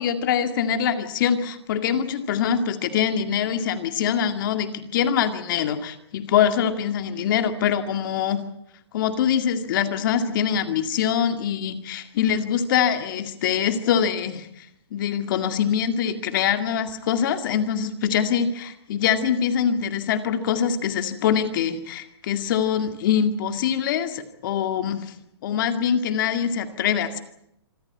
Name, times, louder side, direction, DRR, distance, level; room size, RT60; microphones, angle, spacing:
voice 1, 0.0-8.4 8.9-25.1 25.4-27.2, left 8 dB, 50° left, 9 dB, 2.1 m, -24 dB
26.0 x 14.0 x 9.7 m, 0.77 s
hypercardioid pair, 145°, 14 cm